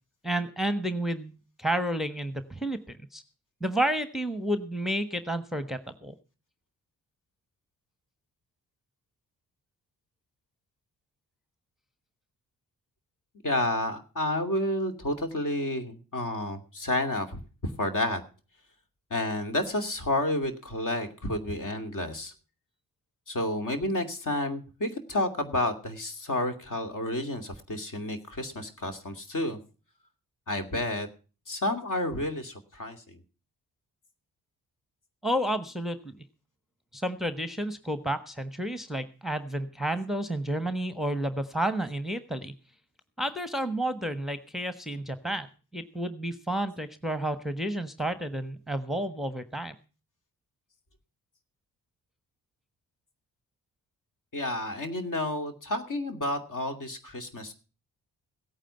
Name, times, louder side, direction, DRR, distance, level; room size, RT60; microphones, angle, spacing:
voice 1, 0.2-1.3 1.6-3.2 3.6-6.1 35.2-36.2 36.9-42.5 43.2-45.5 45.7-49.8, right 1 dB, ahead, 11 dB, 1.2 m, -31 dB
voice 2, 13.4-18.2 19.1-22.3 23.3-29.6 30.5-31.1 31.5-33.2 54.3-57.5, left 1 dB, 50° left, 6 dB, 2.6 m, -30 dB
16.5 x 9.0 x 5.7 m, 0.36 s
hypercardioid pair, 40°, 41 cm